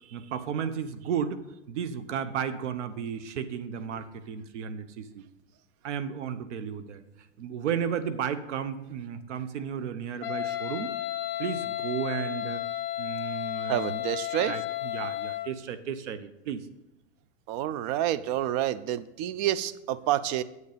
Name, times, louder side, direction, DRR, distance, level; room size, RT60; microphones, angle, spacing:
voice 1, 0.1-5.2 5.8-7.0 7.4-10.9 11.4-12.6 13.0-14.0 14.4-16.7, right 7 dB, 75° right, 12 dB, 1.0 m, -33 dB
Wind instrument woodwind instrument, 10.2-15.6, left 13 dB, 30° left, 0.7 m, -33 dB
voice 2, 13.7-14.6 17.5-20.4, right 12 dB, 35° right, 16 dB, 0.4 m, -28 dB
9.5 x 8.2 x 5.1 m, 0.90 s
supercardioid pair, 140°, 36 cm